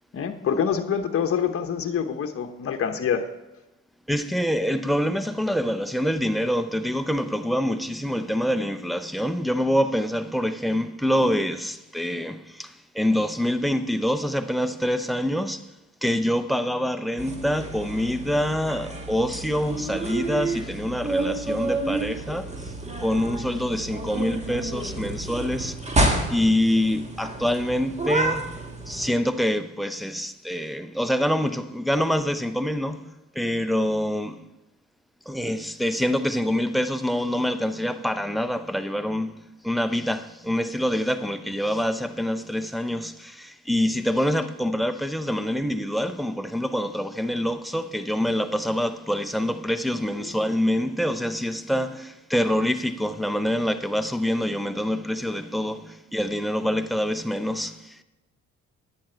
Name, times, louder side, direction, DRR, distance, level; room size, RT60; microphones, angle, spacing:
voice 1, 0.1-3.3 50.2-50.3, left 7 dB, 50° left, 1.0 m, -26 dB
voice 2, 4.1-15.7 16.0-22.7 23.0-25.8 26.3-28.5 28.9-33.1 33.3-34.4 35.3-39.4 39.6-58.0, equal, ahead, 0.6 m, -26 dB
sound 1, 17.2-29.1, right 2 dB, 20° right, 1.6 m, -29 dB
10.0 x 8.8 x 4.5 m
cardioid pair, 90°, 30 cm